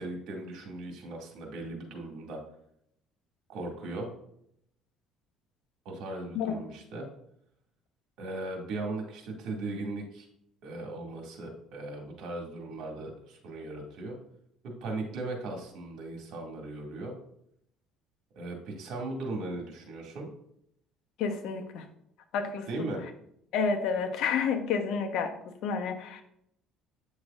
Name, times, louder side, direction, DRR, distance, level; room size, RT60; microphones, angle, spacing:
voice 1, 0.0-2.4 3.5-4.1 5.9-7.1 8.2-10.3 10.6-14.2 14.6-17.1 18.4-20.3 22.7-23.0, right 2 dB, 70° right, 1 dB, 2.2 m, -38 dB
voice 2, 21.2-21.8 22.3-22.9 23.5-25.3 25.6-26.2, left 6 dB, 70° left, 5 dB, 1.1 m, -30 dB
9.3 x 6.5 x 2.5 m, 0.72 s
cardioid pair, 120°, 0 cm